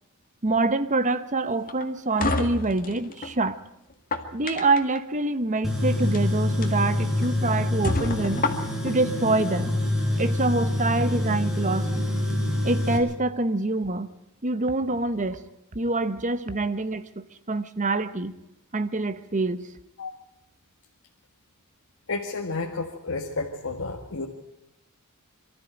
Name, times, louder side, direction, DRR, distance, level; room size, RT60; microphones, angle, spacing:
voice 1, 0.4-3.6 4.3-8.4 8.8-9.7 10.2-12.1 12.6-14.1 14.4-15.4 15.7-17.1 17.5-18.3 18.7-19.7, right 2 dB, 35° right, 1.1 m, -25 dB
sound 1, 1.7-3.3 3.9-5.0 6.0-6.2 6.6-6.7 7.2-7.3 7.8-8.9, left 2 dB, 40° left, 1.9 m, -29 dB
Tools, 5.6-13.0, left 1 dB, ahead, 4.5 m, -26 dB
voice 2, 22.1-24.3, left 3 dB, 60° left, 1.7 m, -31 dB
24.0 x 13.5 x 9.0 m
head